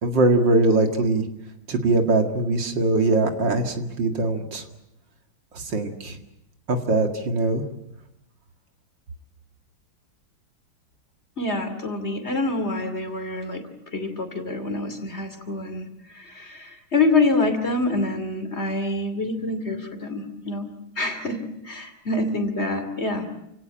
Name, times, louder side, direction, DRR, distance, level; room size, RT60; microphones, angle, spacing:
voice 1, 0.0-1.2 1.7-4.6 5.5-6.2 6.7-7.6, right 2 dB, 60° right, 5 dB, 2.7 m, -21 dB
voice 2, 11.4-13.6 13.9-15.9 16.1-20.7 21.0-23.3, left 2 dB, 30° left, 7 dB, 2.8 m, -26 dB
29.0 x 17.5 x 8.8 m, 0.86 s
omnidirectional pair, 2.3 m